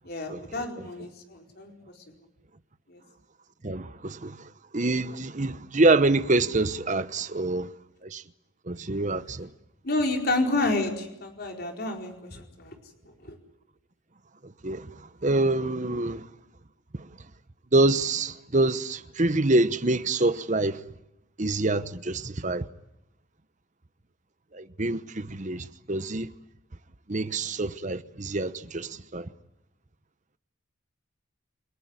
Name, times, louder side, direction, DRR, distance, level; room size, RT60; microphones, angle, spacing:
voice 1, 0.0-1.7 2.9-3.0 9.8-12.7 13.2-13.4, left 2 dB, 50° left, 4.5 m, -29 dB
voice 2, 3.6-7.7 8.0-8.2 8.7-9.5 14.4-16.3 17.0-17.1 17.7-20.8 21.4-22.7 24.5-26.3 27.1-29.3, right 2 dB, 35° right, 1.0 m, -26 dB
29.5 x 19.0 x 9.7 m
head